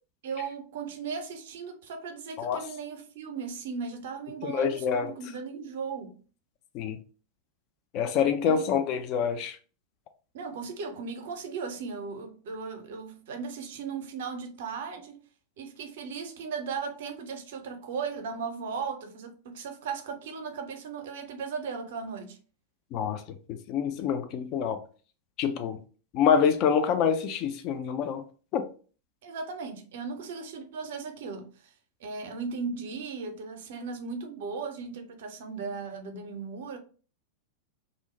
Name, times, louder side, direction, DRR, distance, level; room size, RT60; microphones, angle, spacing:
voice 1, 0.2-6.2 8.5-8.6 10.3-15.2 15.6-22.4 29.2-31.7 32.0-36.8, right 5 dB, 55° right, 0.5 m, -37 dB
voice 2, 4.4-5.1 6.7-7.0 7.9-9.6 22.9-23.2 23.5-24.8 25.4-25.8 26.1-28.2 28.5-28.7, left 7 dB, 40° left, 0.3 m, -26 dB
2.5 x 2.0 x 2.9 m
figure-of-eight pair, 90°, 0 cm